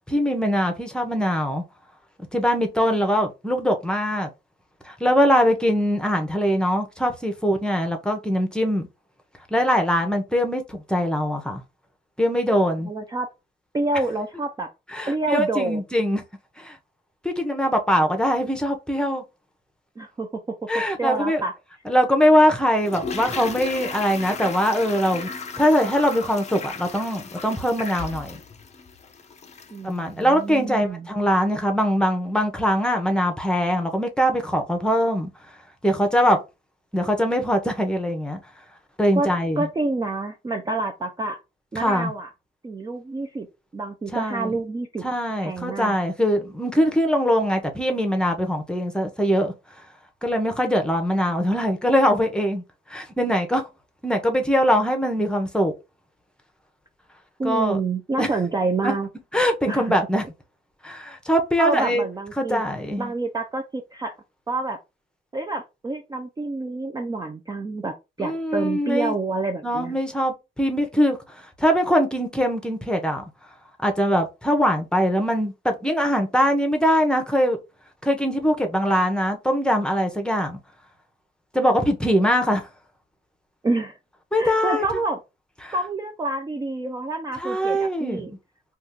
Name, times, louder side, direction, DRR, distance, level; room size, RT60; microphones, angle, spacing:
voice 1, 0.1-1.6 2.3-4.3 4.9-8.9 9.5-11.6 12.2-12.9 14.9-16.2 16.6-16.8 17.2-19.2 20.7-21.4 21.9-25.3 25.6-28.4 29.8-35.3 35.8-36.4 36.9-38.4 39.0-39.7 41.8-42.1 44.1-44.5 45.0-49.5 50.2-52.6 52.9-53.6 54.0-55.7 57.4-57.8 58.2-58.3 58.8-58.9 59.3-60.2 60.8-62.0 62.4-63.1 68.2-69.1 69.6-73.2 73.8-77.6 78.0-80.6 81.5-82.7 84.3-84.8 85.6-85.8 87.4-88.4, equal, 5° left, 0.8 m, -22 dB
voice 2, 12.8-13.3 13.7-14.7 15.1-15.8 20.0-20.4 20.7-21.5 29.7-31.1 39.2-39.3 39.6-41.4 41.7-42.3 42.6-43.5 43.7-45.0 45.4-46.0 57.4-59.1 59.7-59.9 61.6-62.6 63.0-64.1 64.5-64.8 65.3-69.9 83.6-84.0 84.4-85.2 85.7-88.3, right 3 dB, 20° right, 0.5 m, -28 dB
Toilet flush, 22.8-29.9 30.1-30.2, left 5 dB, 35° left, 0.5 m, -35 dB
2.7 x 2.5 x 3.6 m
cardioid pair, 90°, 20 cm